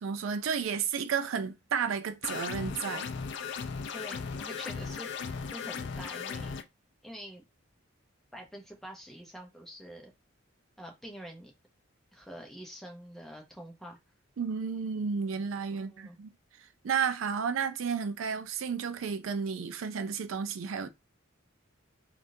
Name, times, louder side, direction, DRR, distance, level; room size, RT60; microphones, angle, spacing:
voice 1, 0.0-3.1 14.4-16.3 16.8-20.9, right 6 dB, 75° right, 0.4 m, -32 dB
sound 1, 2.2-6.6, left 5 dB, 60° left, 0.4 m, -37 dB
voice 2, 3.9-6.6 7.0-7.4 8.3-10.1 10.8-11.5 12.1-14.0 15.7-16.2, equal, ahead, 0.7 m, -46 dB
3.5 x 2.5 x 2.6 m
head